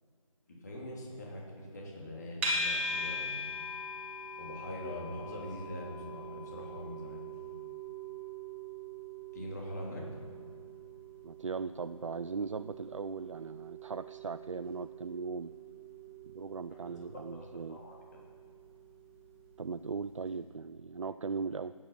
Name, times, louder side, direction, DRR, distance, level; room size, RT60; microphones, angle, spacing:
voice 1, 0.5-3.5 4.4-7.2 9.3-10.1 16.7-17.9, left 1 dB, 30° left, -2 dB, 3.0 m, -43 dB
sound 1, 2.4-19.6, equal, 25° right, 2.6 m, -42 dB
voice 2, 11.2-15.5 16.2-17.8 19.6-21.7, right 5 dB, 60° right, 13 dB, 0.4 m, -38 dB
15.5 x 9.8 x 5.7 m, 2.3 s
figure-of-eight pair, 165°, 18 cm